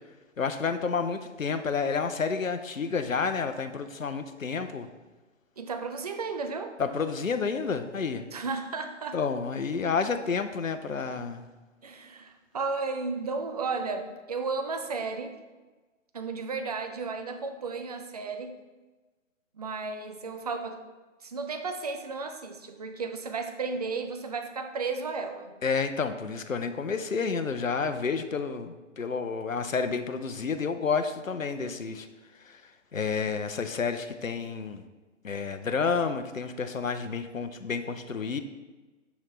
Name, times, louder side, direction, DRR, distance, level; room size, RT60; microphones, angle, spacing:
voice 1, 0.4-4.9 6.8-8.3 9.1-11.5 25.6-32.1 32.4-32.6 32.9-34.8 35.2-38.4, left 5 dB, 90° left, 9 dB, 0.6 m, -30 dB
voice 2, 5.6-6.8 8.3-9.2 11.8-15.3 16.1-18.6 19.5-20.8 21.2-25.5 31.6-31.8, right 4 dB, 35° right, 6 dB, 0.4 m, -34 dB
7.0 x 5.7 x 3.2 m, 1.2 s
figure-of-eight pair, 130°, 38 cm